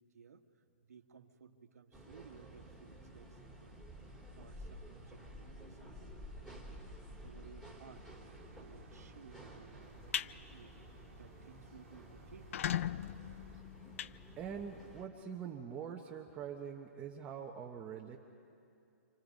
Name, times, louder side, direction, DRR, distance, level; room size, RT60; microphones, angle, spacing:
voice 1, 0.0-3.9 4.3-6.8 7.2-8.1 8.6-12.5, right 6 dB, 85° right, 6 dB, 1.7 m, -58 dB
sound 1, 1.9-15.1, equal, 5° left, 2.7 m, -53 dB
wall fan small switch on off ventilaton motor, 7.9-13.6, right 7 dB, 65° right, 1.7 m, -62 dB
sound 2, 9.8-10.3 10.8-11.0 11.4-11.5 11.7-11.8 12.3-14.9, left 10 dB, 60° left, 0.5 m, -38 dB
voice 2, 14.4-18.2, right 7 dB, 15° right, 0 dB, 1.1 m, -44 dB
28.0 x 27.5 x 5.3 m, 2.6 s
hypercardioid pair, 150°, 8 cm